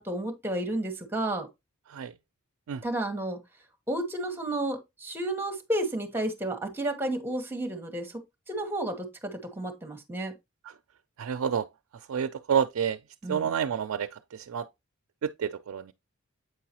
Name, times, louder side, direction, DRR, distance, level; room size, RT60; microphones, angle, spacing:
voice 1, 0.0-1.5 2.8-3.4 3.9-10.3 13.2-13.5, right 1 dB, 10° right, 1.1 m, -32 dB
voice 2, 11.2-11.7 12.1-13.0 13.3-14.7 15.2-15.9, right 8 dB, 85° right, 0.4 m, -29 dB
8.0 x 4.6 x 2.8 m
head